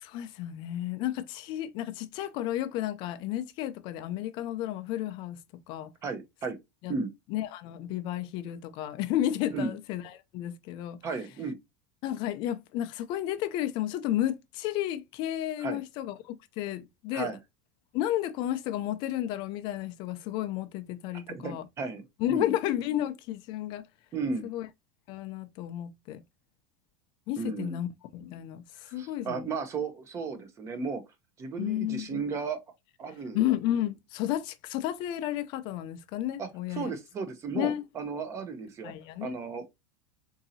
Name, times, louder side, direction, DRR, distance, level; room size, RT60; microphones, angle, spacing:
voice 1, 0.0-5.4 5.7-5.9 6.8-6.9 7.3-10.0 10.3-11.0 12.0-17.3 17.9-21.6 22.2-23.8 24.4-24.7 25.1-26.2 27.3-29.5 31.6-32.2 33.3-36.9 37.6-37.8 38.8-39.4, left 12 dB, 45° left, 0.4 m, -32 dB
voice 2, 6.0-6.6 6.9-7.1 9.5-9.7 11.0-11.6 15.6-15.8 17.1-17.4 21.1-22.5 24.1-24.5 27.4-27.8 28.9-31.0 31.4-32.6 33.0-33.4 36.4-38.9 39.2-39.7, right 4 dB, 25° right, 0.7 m, -34 dB
3.8 x 2.7 x 2.7 m
supercardioid pair, 145°, 11 cm